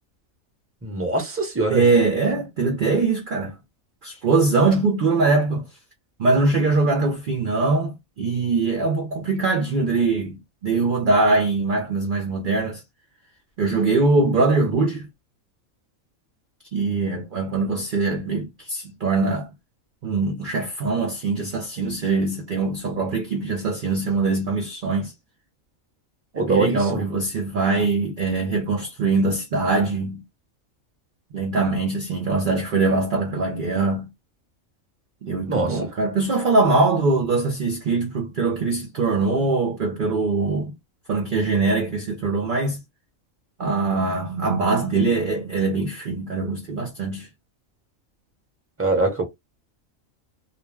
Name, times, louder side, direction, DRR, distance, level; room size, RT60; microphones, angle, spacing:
voice 1, 0.8-1.8 26.4-27.0 35.5-35.9 48.8-49.2, right 2 dB, 15° right, 0.7 m, -23 dB
voice 2, 1.7-3.5 4.0-5.7 6.2-12.8 13.6-15.1 16.7-19.5 20.0-25.1 26.3-30.2 31.3-34.1 35.2-40.7 41.1-42.8 43.6-47.3, right 3 dB, 55° right, 0.6 m, -22 dB
2.4 x 2.2 x 3.2 m
omnidirectional pair, 1.4 m